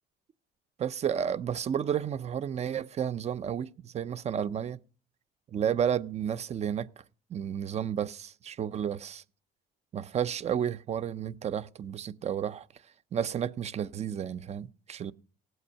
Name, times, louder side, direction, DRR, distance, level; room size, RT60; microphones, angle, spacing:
voice 1, 0.8-4.8 5.5-6.9 7.3-9.2 9.9-12.7 13.1-15.1, right 8 dB, 40° right, 0.6 m, -32 dB
17.0 x 8.0 x 5.6 m
cardioid pair, 110°, 17 cm